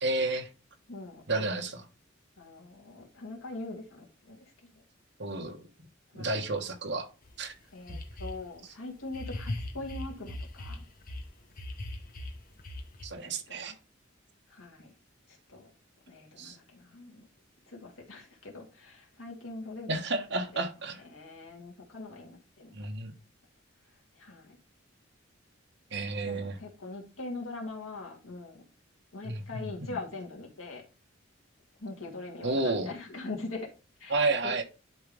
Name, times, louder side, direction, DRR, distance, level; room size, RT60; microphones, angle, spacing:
voice 1, 0.0-0.5 1.3-1.8 5.2-5.7 6.1-7.1 7.4-7.5 7.9-8.0 13.0-13.7 16.4-16.6 19.9-21.0 22.7-23.1 25.9-26.6 29.2-30.0 32.4-32.9 34.1-34.6, right 2 dB, 60° right, 1.3 m, -31 dB
voice 2, 0.9-1.6 2.4-4.8 6.1-6.3 7.7-10.9 13.2-13.8 14.5-14.9 15.3-15.7 16.1-17.3 17.7-19.9 21.0-22.7 24.2-24.6 26.3-28.7 29.1-30.8 31.8-33.7 34.0-34.6, left 2 dB, 90° left, 2.6 m, -42 dB
sound 1, 7.3-7.4 7.9-8.4 9.1-11.2 11.6-13.1, left 1 dB, 45° left, 1.2 m, -38 dB
11.0 x 3.6 x 3.5 m
head